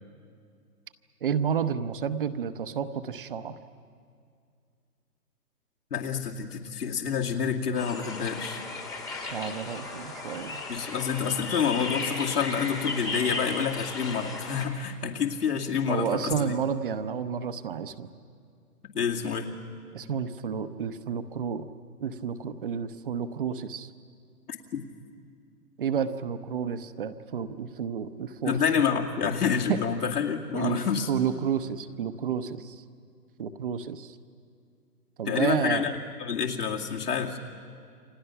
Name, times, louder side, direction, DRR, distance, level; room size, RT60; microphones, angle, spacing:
voice 1, 1.2-3.6 9.2-10.6 15.9-18.1 19.9-21.7 22.0-23.9 25.8-28.6 29.7-29.8 30.5-30.8 31.1-32.8 33.4-34.2 35.2-35.9, right 7 dB, 35° right, 11 dB, 0.9 m, -30 dB
voice 2, 5.9-8.6 10.7-16.5 18.9-19.5 28.4-31.1 35.2-35.9 36.2-37.4, left 7 dB, 70° left, -1 dB, 2.6 m, -28 dB
sound 1, 7.7-14.7, left 3 dB, 5° left, 1.2 m, -35 dB
29.0 x 25.0 x 5.8 m, 2.3 s
hypercardioid pair, 155°, 48 cm